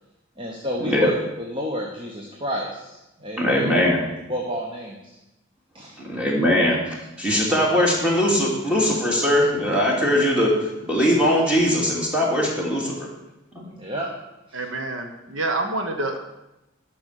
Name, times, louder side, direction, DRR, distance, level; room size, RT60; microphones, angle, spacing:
voice 1, 0.4-3.7 4.3-5.2 5.7-6.0 13.7-14.1 14.5-14.6, equal, 25° right, -1 dB, 1.1 m, -30 dB
voice 2, 3.4-4.0 6.1-10.5 10.8-12.9 13.5-13.6, equal, 5° right, -3 dB, 2.4 m, -20 dB
voice 3, 14.5-16.2, right 2 dB, 80° right, 5 dB, 1.2 m, -27 dB
11.0 x 6.1 x 6.6 m, 0.94 s
head